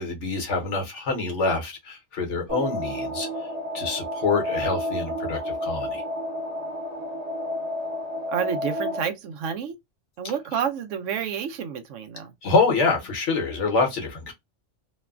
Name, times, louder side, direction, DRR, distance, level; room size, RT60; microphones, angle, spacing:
voice 1, 0.0-3.3 3.7-6.0 12.4-14.3, left 3 dB, 70° left, 1.3 m, -26 dB
sound 1, 2.5-9.0, left 1 dB, 35° right, 1.0 m, -30 dB
voice 2, 8.3-9.8 10.2-12.3, right 7 dB, 75° right, 0.9 m, -29 dB
3.1 x 2.2 x 2.3 m
omnidirectional pair, 1.3 m